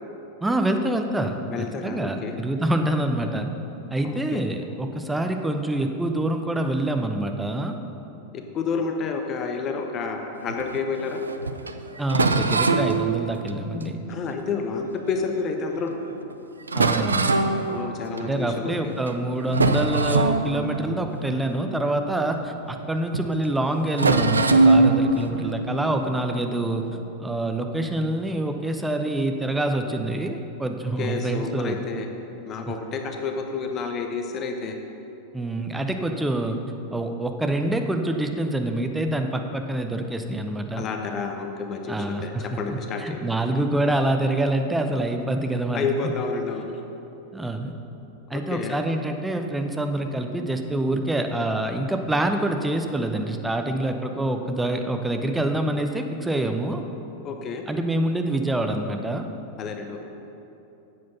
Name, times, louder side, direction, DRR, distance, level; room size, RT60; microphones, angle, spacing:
voice 1, 0.4-1.4 1.8-3.5 3.9-7.7 12.0-14.0 16.7-17.4 18.2-26.9 27.2-31.8 32.7-32.8 35.3-36.6 36.9-40.9 41.9-45.8 47.3-47.7 48.3-56.8 57.7-59.3, right 1 dB, 5° right, 5 dB, 0.7 m, -26 dB
voice 2, 1.5-2.4 4.0-4.4 8.3-11.2 14.1-16.0 17.7-18.9 31.0-32.1 32.4-34.8 40.8-43.2 45.7-46.8 48.3-48.8 57.2-57.6 59.6-60.0, left 5 dB, 30° left, 4 dB, 0.8 m, -30 dB
sound 1, 10.4-15.3 15.9-16.0 16.3-16.4 16.7-18.6 19.0-19.2 19.5-22.9 23.1-23.3 23.9-27.0, right 3 dB, 75° right, 0.4 m, -24 dB
9.5 x 7.7 x 5.7 m, 3.0 s
figure-of-eight pair, 90°, 0 cm